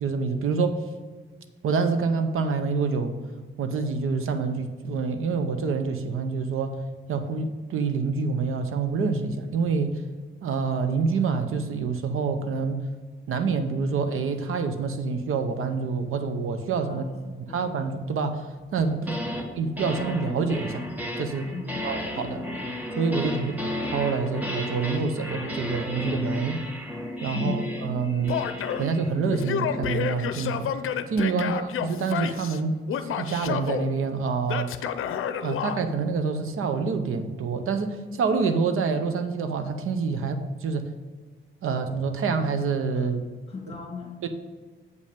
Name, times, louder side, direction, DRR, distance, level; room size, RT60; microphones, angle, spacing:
voice 1, 0.0-0.8 1.6-3.1 3.6-6.8 7.1-10.0 10.4-12.8 13.3-17.0 17.5-19.0 19.6-20.8 21.2-21.5 21.8-22.4 23.0-23.5 23.9-26.6 27.2-28.4 28.8-30.7 31.1-32.7 33.0-34.7 35.4-40.9 41.6-43.2 44.2-44.3, right 5 dB, 90° right, 8 dB, 0.8 m, -27 dB
voice 2, 16.9-17.6 19.0-19.6 21.5-21.8 23.3-23.6 27.3-27.7 31.3-31.6 42.9-43.1 43.5-44.3, left 4 dB, 30° left, 0 dB, 2.0 m, -37 dB
sound 1, 18.8-19.5 19.8-30.2, left 1 dB, 10° right, 1.1 m, -33 dB
Male speech man speaking / Yell, 28.3-28.9 29.3-32.6 32.9-33.9 34.5-35.8, left 8 dB, 80° left, 0.6 m, -30 dB
8.0 x 5.4 x 5.2 m, 1.5 s
wide cardioid pair, 150°, 21 cm